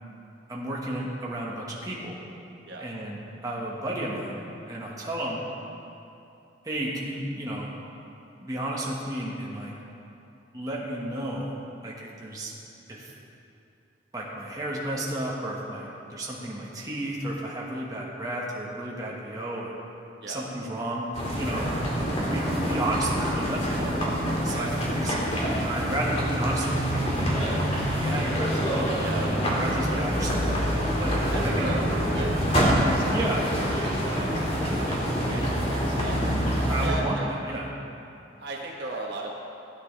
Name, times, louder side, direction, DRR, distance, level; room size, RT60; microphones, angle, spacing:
voice 1, 0.5-2.2 2.8-5.4 6.6-7.7 8.4-9.7 10.5-11.5 11.8-12.5 12.9-13.1 14.1-19.7 20.3-24.0 24.4-24.7 25.0-25.3 25.6-27.6 28.0-31.1 31.4-31.8 33.1-33.5 36.7-37.2 37.5-37.7, right 1 dB, 20° right, -4 dB, 1.5 m, -32 dB
sound 1, 21.1-36.9, equal, 35° left, 2.1 m, -26 dB
voice 2, 31.3-31.8 32.1-36.2 36.8-37.3 38.4-39.3, right 3 dB, 60° right, -2 dB, 1.2 m, -37 dB
16.0 x 9.6 x 3.3 m, 2.7 s
head